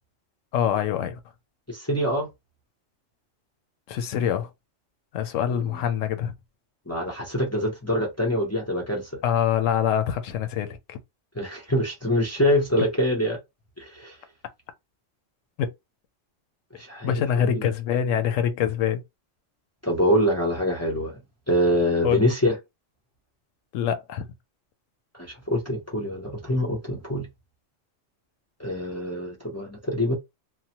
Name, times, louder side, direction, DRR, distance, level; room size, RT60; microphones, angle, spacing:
voice 1, 0.5-1.2 3.9-4.5 5.1-6.3 9.2-11.0 15.6-15.7 17.0-19.0 22.0-22.2 23.7-24.2, left 9 dB, 80° left, 1.0 m, -25 dB
voice 2, 1.7-2.3 5.5-5.8 6.9-9.1 11.4-13.4 13.8-14.2 16.8-17.7 19.8-21.1 21.5-22.6 25.2-27.3 28.6-30.1, equal, 20° left, 0.5 m, -25 dB
2.9 x 2.1 x 2.8 m
omnidirectional pair, 1.3 m